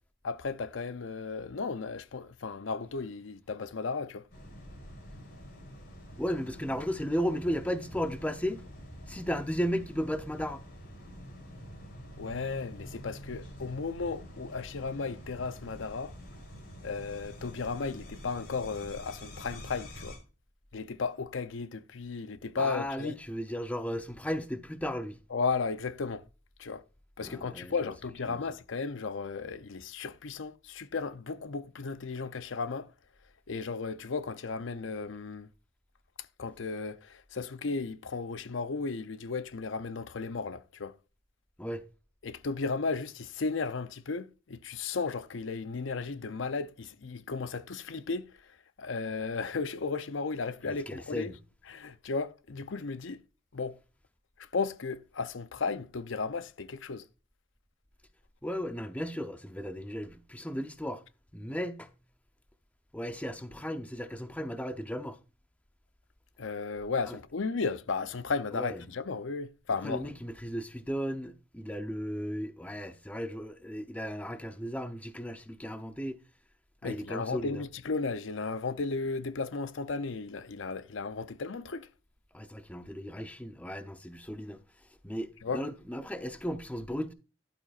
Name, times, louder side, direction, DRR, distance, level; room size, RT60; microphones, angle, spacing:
voice 1, 0.2-4.3 12.2-16.1 16.8-20.2 20.7-23.1 25.3-26.2 26.6-26.8 27.2-32.9 33.5-35.5 36.4-41.0 42.2-48.3 48.8-51.3 51.7-53.2 53.5-53.8 54.4-57.0 66.4-70.1 76.8-81.9 85.4-85.6, left 4 dB, 85° left, 0.6 m, -35 dB
sound 1, 4.3-20.2, equal, 55° left, 4.1 m, -47 dB
voice 2, 6.2-8.6 9.1-10.6 22.6-25.2 27.2-27.9 28.3-28.4 41.6-41.8 50.7-51.4 58.4-61.0 61.3-61.9 62.9-65.2 67.1-67.2 68.5-68.8 69.8-76.2 76.8-77.6 82.3-84.6 85.0-87.1, equal, 10° left, 0.7 m, -35 dB
11.5 x 8.8 x 2.5 m
head